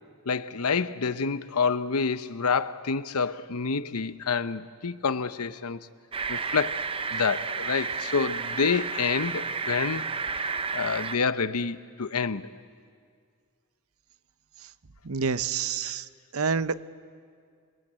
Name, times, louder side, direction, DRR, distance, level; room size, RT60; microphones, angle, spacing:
voice 1, 0.3-5.8 6.3-6.8 7.1-10.0 10.7-12.5 15.8-15.9, left 5 dB, 85° left, 0.9 m, -28 dB
sound 1, 6.1-11.2, right 5 dB, 25° right, 0.6 m, -31 dB
voice 2, 15.0-16.0 16.3-16.9, right 5 dB, 70° right, 0.8 m, -28 dB
28.5 x 22.5 x 8.9 m
head